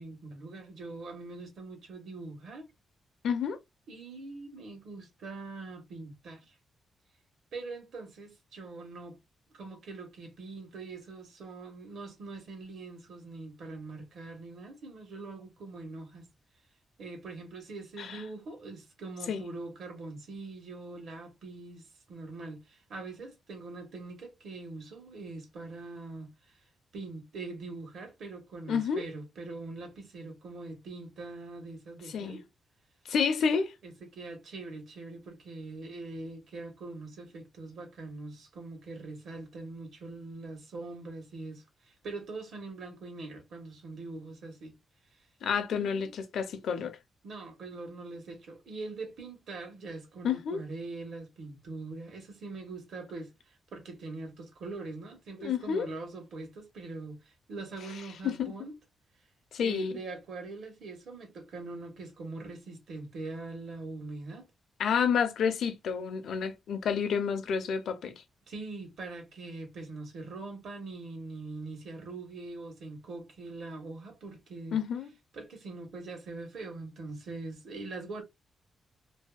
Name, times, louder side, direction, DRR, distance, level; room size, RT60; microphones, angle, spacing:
voice 1, 0.0-2.7 3.9-6.5 7.5-9.2 9.5-16.3 17.0-26.3 26.9-32.4 33.8-44.7 45.7-46.1 47.2-58.8 59.6-64.5 68.5-74.8 75.3-78.2, right 3 dB, 65° right, 1.1 m, -43 dB
voice 2, 3.2-3.6 18.0-18.2 19.3-19.4 28.7-29.1 32.1-32.4 33.1-33.7 45.4-47.0 50.2-50.6 55.4-55.9 58.2-58.5 59.5-60.0 64.8-68.2 74.7-75.1, left 6 dB, 70° left, 0.6 m, -29 dB
2.7 x 2.7 x 2.2 m
wide cardioid pair, 155°, 0 cm